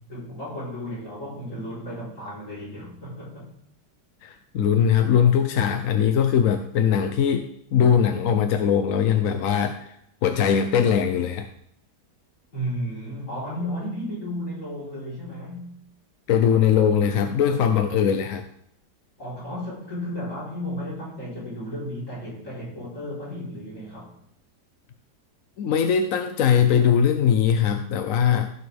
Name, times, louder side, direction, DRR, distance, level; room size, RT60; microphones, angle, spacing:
voice 1, 0.1-3.5 12.5-15.7 19.2-24.1, equal, 45° left, -7 dB, 4.5 m, -33 dB
voice 2, 4.2-9.9 10.2-11.5 16.3-18.4 25.6-28.5, left 8 dB, 65° left, 6 dB, 0.9 m, -21 dB
15.5 x 6.5 x 3.4 m, 0.71 s
omnidirectional pair, 1.8 m